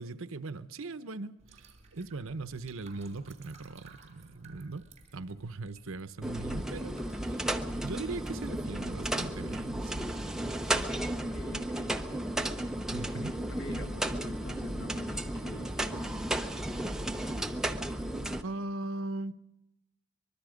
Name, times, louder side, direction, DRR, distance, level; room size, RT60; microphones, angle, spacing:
voice 1, 0.0-4.9 5.1-10.3 10.6-10.8 12.9-13.3 13.7-13.8 17.4-17.7 18.4-19.3, right 3 dB, 80° right, 12 dB, 0.8 m, -40 dB
sound 1, 1.4-8.5, right 3 dB, 35° right, 4.3 m, -57 dB
sound 2, 6.2-18.4, right 1 dB, 5° right, 0.7 m, -34 dB
voice 2, 11.3-12.0 13.0-16.4, left 1 dB, 55° left, 7 dB, 1.2 m, -46 dB
24.5 x 22.0 x 5.1 m, 0.89 s
head